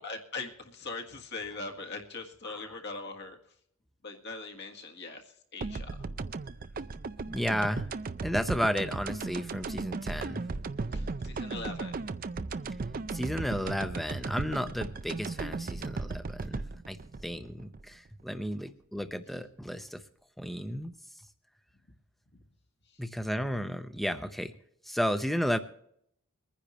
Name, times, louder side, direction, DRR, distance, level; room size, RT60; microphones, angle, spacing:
voice 1, 0.0-3.4 4.0-6.1 10.9-12.0, left 3 dB, 50° left, 3 dB, 1.7 m, -41 dB
sound 1, 5.6-18.4, right 3 dB, 40° right, 0.4 m, -36 dB
voice 2, 7.3-7.9 8.2-10.4 13.1-17.0 17.2-20.0 20.4-20.9 23.0-24.5 24.9-25.6, equal, ahead, 9 dB, 0.7 m, -33 dB
23.0 x 10.0 x 3.1 m, 0.70 s
head